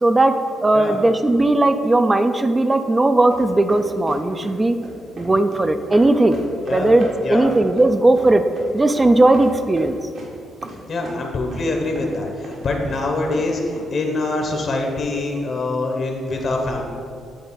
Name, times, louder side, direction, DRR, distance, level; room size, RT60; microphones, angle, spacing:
voice 1, 0.0-4.8 5.1-6.4 6.7-8.4 8.7-10.0, right 2 dB, 20° right, 9 dB, 0.3 m, -17 dB
sound 1, 3.3-4.5 4.8-5.6 5.9-9.5 9.8-10.3 10.6-10.8 11.0-11.1 11.5-11.7 11.9-12.1 12.4-13.0 13.3-13.9 14.2-14.3, right 1 dB, 65° right, 1.2 m, -37 dB
voice 2, 7.2-7.5 10.9-16.8, left 2 dB, 50° left, 2 dB, 0.9 m, -24 dB
8.0 x 3.4 x 3.9 m, 2.3 s
cardioid pair, 90°, 0 cm